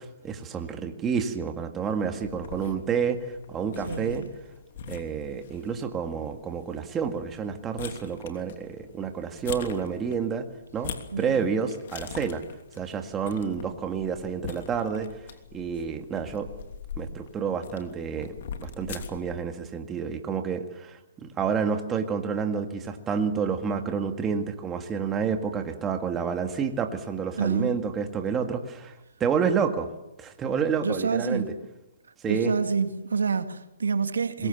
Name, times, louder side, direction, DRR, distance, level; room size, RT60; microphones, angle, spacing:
voice 1, 0.0-4.2 4.9-10.5 10.7-12.4 12.8-15.1 15.5-16.5 17.0-18.3 18.6-29.9 30.2-31.5 32.2-32.5 34.4-34.5, right 6 dB, 15° right, 2.0 m, -29 dB
sound 1, 2.2-19.4, left 6 dB, 50° left, 3.0 m, -43 dB
voice 2, 3.9-4.3 11.1-11.5 27.4-27.7 30.8-31.5 32.3-34.5, right 5 dB, 85° right, 2.2 m, -27 dB
25.5 x 22.0 x 7.1 m
hypercardioid pair, 155°, 0 cm